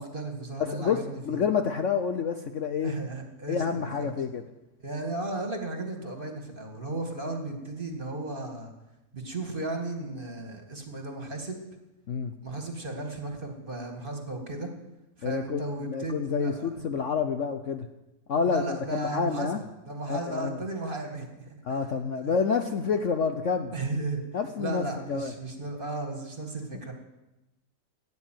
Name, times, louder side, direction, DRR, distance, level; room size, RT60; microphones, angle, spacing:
voice 1, 0.0-1.4 2.8-4.1 4.8-8.7 9.1-11.6 12.4-14.7 15.2-16.7 18.5-19.5 19.8-21.9 22.2-22.3 23.7-24.2 24.6-26.9, right 2 dB, 30° right, 3 dB, 2.3 m, -35 dB
voice 2, 0.6-3.0 3.5-4.5 12.1-12.3 15.2-17.9 18.3-19.6 20.1-20.6 21.6-23.7 24.3-25.3, left 6 dB, 55° left, 7 dB, 1.0 m, -28 dB
15.0 x 9.5 x 9.3 m, 0.97 s
omnidirectional pair, 1.8 m